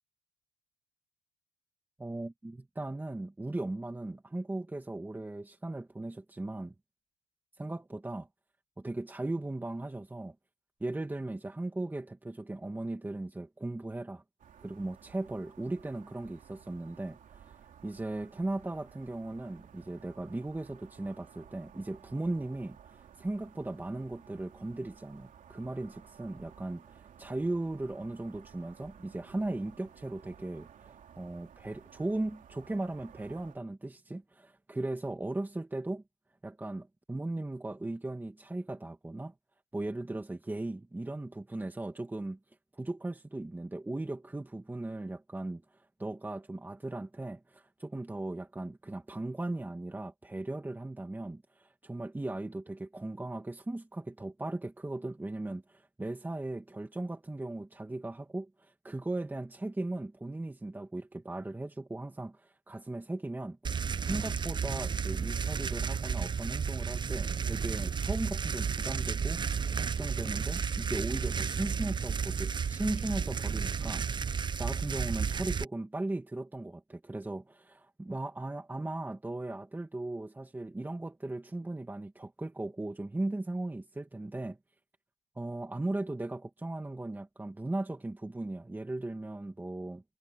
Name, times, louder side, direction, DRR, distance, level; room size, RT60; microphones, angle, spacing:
voice 1, 2.0-6.7 7.6-8.3 8.8-10.4 10.8-14.2 14.6-36.0 36.4-39.3 39.7-42.4 42.7-63.6 64.0-69.4 69.8-74.1 74.6-84.6 85.4-90.0, right 2 dB, 10° right, 2.4 m, -37 dB
sound 1, 14.4-33.6, right 8 dB, 50° right, 3.4 m, -56 dB
sound 2, 63.6-75.6, right 6 dB, 25° right, 0.8 m, -32 dB
cardioid pair, 110°, 17 cm